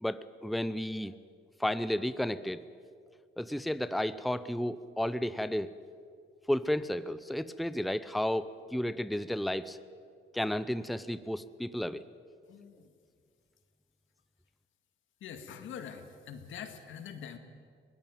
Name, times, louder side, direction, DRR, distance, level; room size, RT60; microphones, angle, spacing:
voice 1, 0.0-1.1 1.6-2.6 3.4-5.7 6.5-9.8 10.3-12.0, left 1 dB, ahead, 14 dB, 0.7 m, -32 dB
voice 2, 12.5-12.9 15.2-17.4, left 7 dB, 80° left, 7 dB, 2.1 m, -44 dB
21.0 x 18.0 x 9.2 m, 2.2 s
cardioid pair, 90°, 20 cm